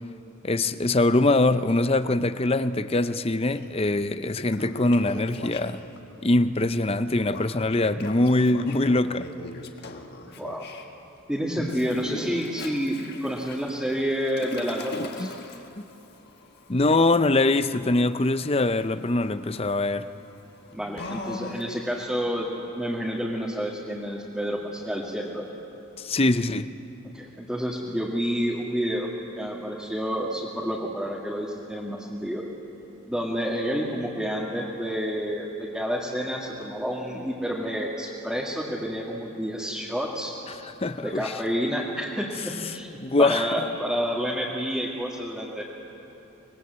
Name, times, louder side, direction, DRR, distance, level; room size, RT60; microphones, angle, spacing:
voice 1, 0.4-5.8 6.2-9.3 11.6-11.7 14.9-15.3 15.8-15.9 16.7-20.1 26.0-26.7 40.5-41.3 42.7-43.5, left 2 dB, 25° left, 0.6 m, -23 dB
Toilet flush, 3.5-3.7 4.1-6.0 7.3-10.8 11.7-22.0, left 2 dB, 45° left, 1.6 m, -40 dB
voice 2, 10.3-10.7 11.3-15.3 20.7-22.5 22.7-25.5 27.1-29.1 29.4-32.5 33.1-40.3 41.0-42.9 43.2-45.6, equal, 5° right, 2.0 m, -29 dB
25.5 x 21.5 x 8.1 m
head